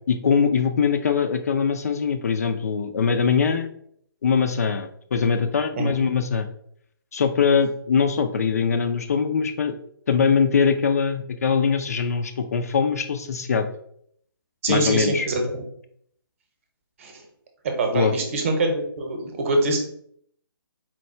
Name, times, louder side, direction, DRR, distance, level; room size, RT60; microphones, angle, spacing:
voice 1, 0.1-3.7 4.2-6.5 7.1-9.8 10.1-13.7 14.7-15.3 17.9-18.1, left 6 dB, 40° left, 7 dB, 0.3 m, -22 dB
voice 2, 14.6-15.4 17.0-17.2 17.6-19.8, right 2 dB, 35° right, 4 dB, 0.8 m, -24 dB
4.4 x 2.3 x 4.3 m, 0.67 s
figure-of-eight pair, 140°, 13 cm